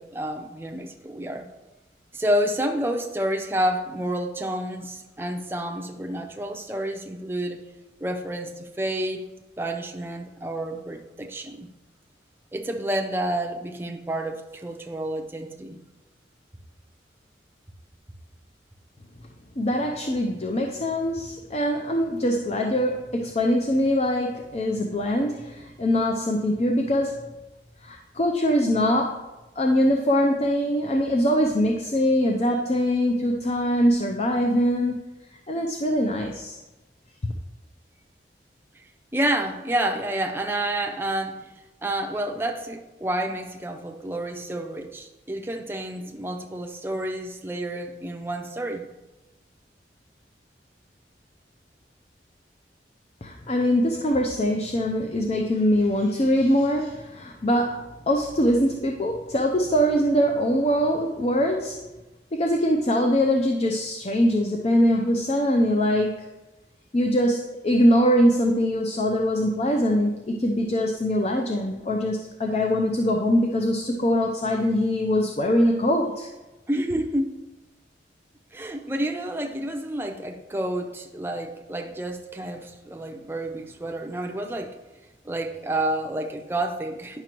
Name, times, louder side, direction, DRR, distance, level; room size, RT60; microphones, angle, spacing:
voice 1, 0.0-1.5 2.1-7.7 8.0-9.2 9.6-11.7 12.5-15.8 39.1-41.5 41.8-48.9 76.7-77.3 78.5-84.8 85.2-87.2, right 1 dB, 15° right, 4 dB, 0.5 m, -29 dB
voice 2, 19.6-27.2 27.8-29.2 29.6-35.0 35.5-36.6 53.2-61.8 62.3-66.3 66.9-76.3, equal, 35° left, 2 dB, 0.5 m, -23 dB
10.5 x 5.9 x 3.0 m, 1.1 s
head